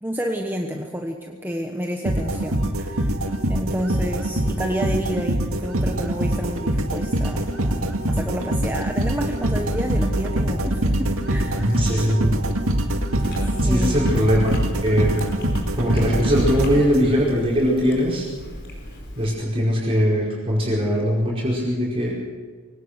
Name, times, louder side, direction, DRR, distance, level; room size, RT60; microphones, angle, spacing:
voice 1, 0.0-3.2 3.5-11.7 13.6-14.1, equal, 10° right, 2 dB, 1.2 m, -30 dB
sound 1, 2.1-17.3, right 1 dB, 80° right, 2.1 m, -24 dB
voice 2, 11.6-12.3 13.6-14.4 14.8-15.2 15.8-18.3 19.2-22.1, equal, 25° right, -5 dB, 5.0 m, -21 dB
Chewing mastication, 13.1-19.3, left 1 dB, 55° left, 4.5 m, -37 dB
23.5 x 18.0 x 6.8 m, 1.5 s
head